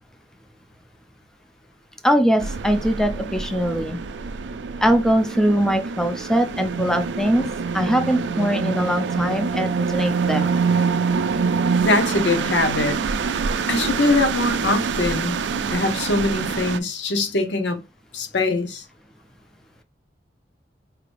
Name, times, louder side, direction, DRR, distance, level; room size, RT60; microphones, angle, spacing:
voice 1, 2.0-4.0 4.8-7.5 7.7-10.6 13.8-13.9, equal, 5° left, 0.4 m, -21 dB
sound 1, 2.4-16.8, right 5 dB, 80° right, 0.4 m, -25 dB
voice 2, 11.8-13.0 13.7-15.4 15.7-17.8 18.1-18.8, left 2 dB, 85° left, 0.8 m, -22 dB
4.8 x 3.2 x 2.5 m
head